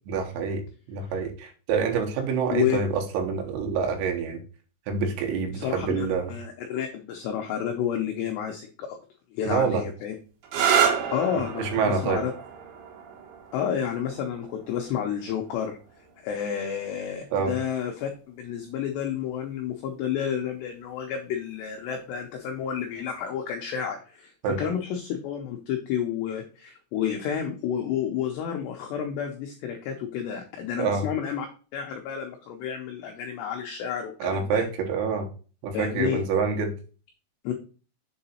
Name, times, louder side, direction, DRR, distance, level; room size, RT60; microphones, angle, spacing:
voice 1, 0.1-0.6 0.9-4.4 4.9-6.3 9.5-9.8 11.6-12.2 17.3-17.5 24.4-24.6 30.8-31.1 34.2-35.3 35.6-36.7, right 5 dB, 90° right, 3 dB, 3.9 m, -26 dB
voice 2, 5.5-9.0 9.3-10.1 11.1-12.3 13.5-15.8 16.2-24.3 24.6-31.5 31.7-34.6 35.7-36.2 37.4-37.5, left 9 dB, 85° left, 3 dB, 2.4 m, -30 dB
sound 1, 10.4-17.9 18.9-19.4 22.9-23.3, right 8 dB, 70° right, 2.6 m, -30 dB
7.6 x 3.9 x 4.2 m, 0.37 s
omnidirectional pair, 5.9 m